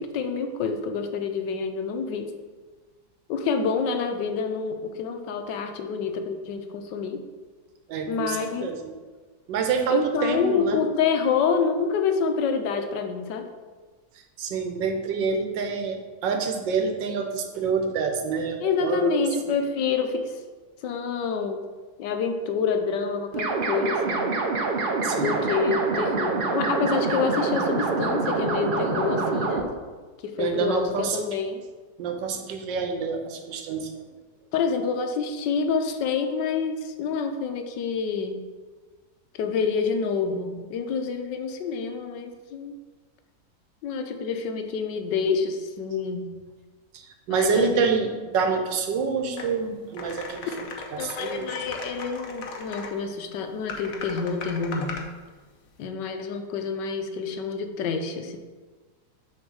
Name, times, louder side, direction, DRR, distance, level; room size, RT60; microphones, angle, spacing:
voice 1, 0.0-2.3 3.3-7.2 8.1-8.7 9.9-13.5 18.6-20.4 20.8-21.6 22.0-24.3 25.2-29.7 30.2-31.6 34.5-38.4 39.4-42.8 43.8-46.3 47.3-47.9 50.9-55.1 55.8-58.4, left 5 dB, 75° left, 6 dB, 1.3 m, -27 dB
voice 2, 7.9-8.8 9.5-10.8 14.4-19.2 25.0-25.4 30.4-31.3 32.0-33.9 46.9-51.6, right 5 dB, 80° right, 5 dB, 1.5 m, -27 dB
sound 1, 23.3-29.6, right 3 dB, 50° right, 0.6 m, -26 dB
sound 2, 49.4-49.5 49.9-52.9 53.7-55.1, left 4 dB, 60° left, 1.1 m, -37 dB
6.5 x 3.6 x 6.1 m, 1.4 s
omnidirectional pair, 1.9 m